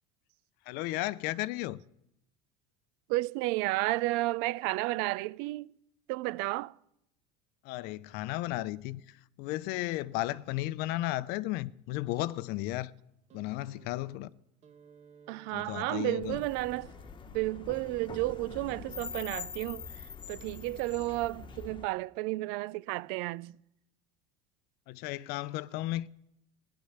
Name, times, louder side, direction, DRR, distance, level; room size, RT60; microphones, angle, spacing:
voice 1, 0.7-1.8 7.6-12.9 13.3-14.3 15.5-16.4 24.9-26.1, left 17 dB, 65° left, 0.6 m, -34 dB
voice 2, 3.1-5.7 6.1-6.7 15.3-16.9 17.3-19.9 20.3-23.6, right 19 dB, 70° right, 0.5 m, -32 dB
sound 1, 13.3-19.5 20.5-20.6, right 6 dB, 40° right, 1.4 m, -58 dB
sound 2, 16.2-21.8, left 6 dB, 25° left, 1.2 m, -44 dB
15.5 x 10.5 x 8.0 m
supercardioid pair, 115°, 18 cm